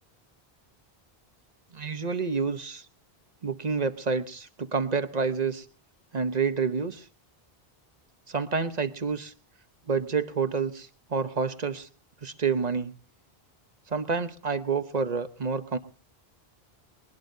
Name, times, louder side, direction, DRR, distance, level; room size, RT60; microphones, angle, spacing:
voice 1, 1.7-2.9 3.4-5.6 6.1-7.1 8.3-9.3 9.9-11.9 12.2-12.9 13.9-15.8, right 5 dB, 45° right, 11 dB, 1.0 m, -28 dB
20.5 x 20.5 x 2.7 m, 0.39 s
omnidirectional pair, 1.0 m